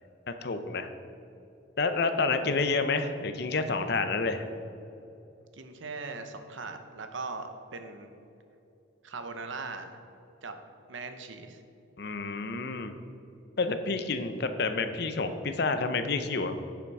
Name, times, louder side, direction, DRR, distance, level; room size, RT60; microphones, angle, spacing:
voice 1, 0.3-0.9 1.8-4.5 12.0-13.0 13.6-16.6, left 3 dB, 55° left, 9 dB, 0.6 m, -29 dB
voice 2, 5.5-8.1 9.0-9.9 10.4-10.5 10.9-11.6, right 4 dB, 75° right, 7 dB, 0.9 m, -40 dB
11.0 x 5.9 x 4.8 m, 2.8 s
head